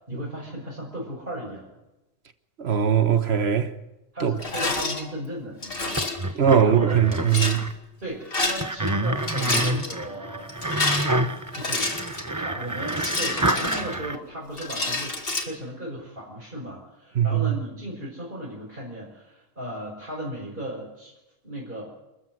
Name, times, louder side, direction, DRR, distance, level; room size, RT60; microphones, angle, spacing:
voice 1, 0.1-1.7 4.1-7.0 8.0-11.2 11.5-12.0 12.3-21.1 21.4-21.8, right 1 dB, 55° right, 6.3 m, -36 dB
voice 2, 2.6-3.7 4.2-4.3 6.3-7.6 17.1-17.5, right 8 dB, 75° right, 1.4 m, -20 dB
Rattle, 4.4-5.0 5.6-6.3 7.1-7.6 8.2-8.9 9.2-9.9 10.5-12.3 12.9-14.2 14.6-15.4, left 2 dB, 65° left, 2.7 m, -28 dB
sound 1, 6.0-7.7 8.6-14.2, right 1 dB, 20° right, 1.0 m, -28 dB
28.5 x 14.0 x 7.9 m
omnidirectional pair, 1.1 m